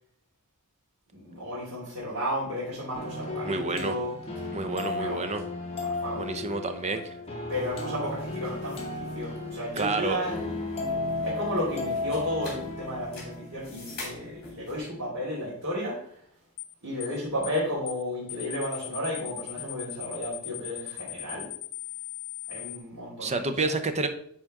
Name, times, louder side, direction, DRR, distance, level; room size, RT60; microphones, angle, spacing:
voice 1, 1.1-4.1 4.7-5.2 5.8-6.2 7.5-16.0 16.8-21.5 22.5-23.7, equal, 65° right, -8 dB, 2.8 m, -33 dB
sound 1, 2.9-13.9, left 2 dB, 30° left, 1.8 m, -34 dB
voice 2, 3.4-4.0 4.5-5.4 6.1-7.1 9.8-10.2 23.2-24.1, right 3 dB, 30° right, 8 dB, 0.7 m, -29 dB
sound 2, 7.5-14.8, left 2 dB, 45° left, 3.4 m, -48 dB
sound 3, 16.6-16.7 17.0-17.2 17.4-17.6 17.9-18.0 18.3-22.8, left 21 dB, 85° left, 0.4 m, -38 dB
9.8 x 4.3 x 3.7 m, 0.66 s
head